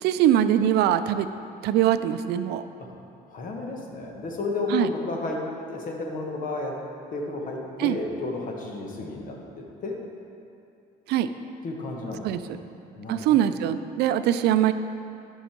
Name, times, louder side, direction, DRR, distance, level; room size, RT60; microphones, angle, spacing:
voice 1, 0.0-1.3 1.6-2.6 4.7-4.9 7.8-8.0 11.1-11.3 12.2-12.4 13.1-14.7, right 11 dB, 75° right, 11 dB, 0.4 m, -22 dB
voice 2, 3.3-5.4 5.7-6.8 7.1-10.0 11.6-12.6 13.0-13.4, left 2 dB, 50° left, 0 dB, 1.4 m, -32 dB
12.0 x 5.6 x 4.4 m, 2.6 s
cardioid pair, 110°, 17 cm